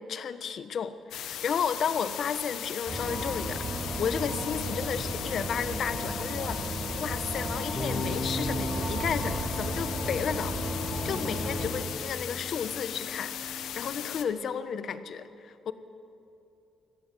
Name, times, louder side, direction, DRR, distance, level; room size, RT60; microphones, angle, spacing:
voice 1, 0.0-15.7, left 7 dB, 60° left, 12 dB, 1.2 m, -33 dB
sound 1, 1.1-14.2, left 10 dB, 80° left, 1.3 m, -38 dB
sound 2, 2.9-11.7, right 1 dB, 30° right, 5.9 m, -34 dB
sound 3, 7.8-14.0, left 2 dB, 30° left, 3.8 m, -39 dB
24.5 x 17.5 x 7.6 m, 2.8 s
cardioid pair, 90°, 0 cm